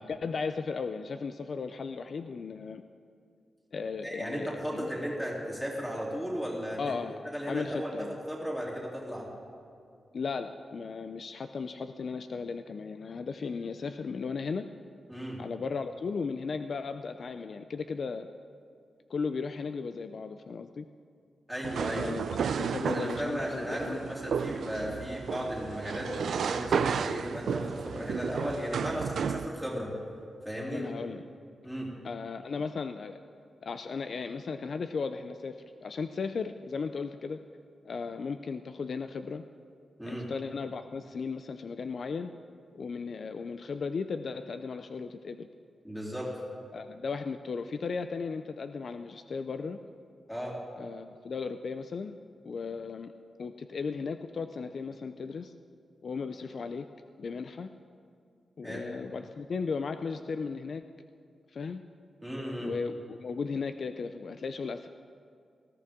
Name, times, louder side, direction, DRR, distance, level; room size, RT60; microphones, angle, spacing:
voice 1, 0.0-2.8 3.7-4.9 6.8-8.2 10.1-14.6 15.4-18.3 19.1-20.9 22.0-22.2 22.6-24.0 30.7-31.2 32.0-33.2 33.6-37.4 37.8-39.5 40.0-42.3 42.7-45.5 46.7-49.8 50.8-52.2 52.4-53.1 53.4-55.5 56.0-56.9 57.2-57.7 58.6-60.8 61.5-61.8 62.6-64.9, left 5 dB, 50° left, 9 dB, 0.4 m, -36 dB
voice 2, 4.0-6.9 7.3-7.9 8.3-9.3 15.1-15.4 21.5-22.1 22.9-29.9 30.4-30.9 31.6-31.9 40.0-40.3 45.8-46.4 50.3-50.6 58.6-58.8 62.2-62.7, equal, ahead, -4 dB, 3.1 m, -35 dB
sound 1, 21.6-29.5, right 6 dB, 80° right, 0.4 m, -32 dB
19.5 x 14.5 x 3.7 m, 2.4 s
wide cardioid pair, 155°, 0 cm